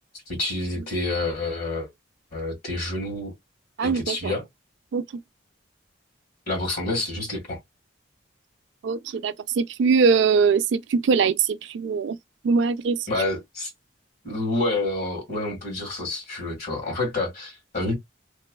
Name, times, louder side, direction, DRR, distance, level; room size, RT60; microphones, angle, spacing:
voice 1, 0.3-1.9 2.3-3.3 3.8-4.4 6.5-7.6 13.1-13.7 14.2-17.9, left 2 dB, 50° left, 1.9 m, -28 dB
voice 2, 3.8-4.3 4.9-5.0 8.8-12.2 12.4-13.1, right 5 dB, 65° right, 0.3 m, -22 dB
3.0 x 2.2 x 2.3 m
head